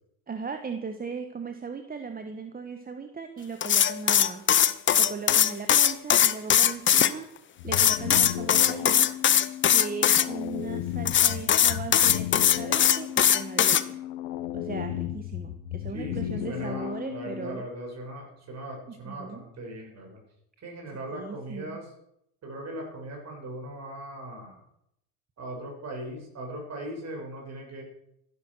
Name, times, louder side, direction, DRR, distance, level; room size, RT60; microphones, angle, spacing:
voice 1, 0.3-4.4 5.0-7.3 7.6-9.1 9.7-14.0 14.5-17.6 19.0-19.4 21.1-21.8, right 5 dB, 20° right, 7 dB, 1.4 m, -38 dB
sound 1, 3.6-7.1 7.7-10.3 11.1-13.8, left 9 dB, 25° left, 0.8 m, -20 dB
sound 2, 7.6-17.6, left 13 dB, 75° left, 1.4 m, -35 dB
voice 2, 15.9-20.2 20.6-21.9 22.4-24.6 25.4-27.8, right 1 dB, 35° right, 1 dB, 7.2 m, -39 dB
15.0 x 11.5 x 6.6 m, 0.77 s
supercardioid pair, 115°, 45 cm